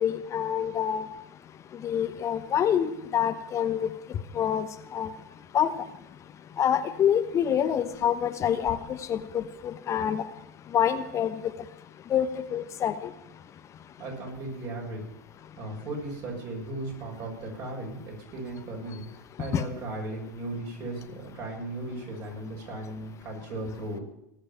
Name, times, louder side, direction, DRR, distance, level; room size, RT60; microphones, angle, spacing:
voice 1, 0.0-1.0 1.8-3.9 4.3-4.7 4.9-5.1 5.5-5.7 6.6-8.8 9.1-10.2 10.7-11.3 12.1-12.3 12.5-12.9 19.5-19.6, left 9 dB, 35° left, 9 dB, 1.0 m, -26 dB
voice 2, 14.0-15.0 15.6-24.0, right 2 dB, 45° right, 0 dB, 6.9 m, -36 dB
19.5 x 6.6 x 8.8 m, 0.84 s
hypercardioid pair, 90°, 9 cm